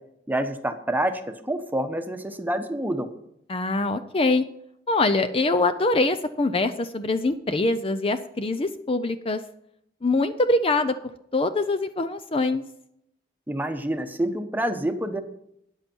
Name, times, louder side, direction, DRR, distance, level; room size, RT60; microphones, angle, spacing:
voice 1, 0.3-3.1 13.5-15.2, right 1 dB, 10° right, 7 dB, 1.0 m, -27 dB
voice 2, 3.5-4.4 4.9-9.4 10.0-10.9 11.3-12.6, left 2 dB, 30° left, 10 dB, 0.5 m, -23 dB
13.5 x 9.7 x 4.5 m, 0.75 s
head